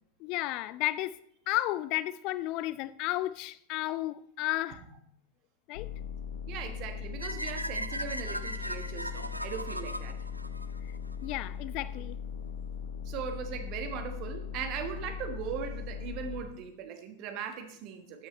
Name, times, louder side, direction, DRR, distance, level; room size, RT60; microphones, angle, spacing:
voice 1, 0.2-1.2 1.5-4.8 5.7-5.9 10.8-10.9 11.2-12.2, left 16 dB, 40° left, 0.3 m, -33 dB
sound 1, 5.7-16.4, left 7 dB, 60° left, 0.8 m, -39 dB
voice 2, 6.5-10.2 13.0-18.3, right 7 dB, 40° right, 1.4 m, -39 dB
sound 2, 7.2-11.3, right 1 dB, 90° right, 0.4 m, -38 dB
12.5 x 8.1 x 3.2 m
figure-of-eight pair, 90°, 0 cm